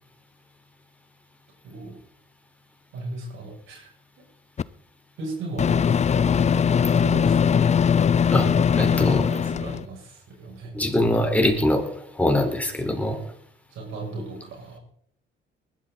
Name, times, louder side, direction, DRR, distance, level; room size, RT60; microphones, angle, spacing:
voice 1, 1.6-2.0 2.9-3.9 4.2-4.3 5.2-7.7 8.6-10.8 12.3-12.4 13.7-14.8, right 2 dB, 80° right, -1 dB, 7.6 m, -36 dB
Microwave oven, 4.6-4.7 5.6-9.8, left 7 dB, 35° left, 0.5 m, -20 dB
voice 2, 8.8-9.2 10.7-13.2, left 1 dB, 5° left, 2 dB, 4.6 m, -23 dB
20.0 x 13.0 x 4.2 m, 0.66 s
cardioid pair, 90°, 20 cm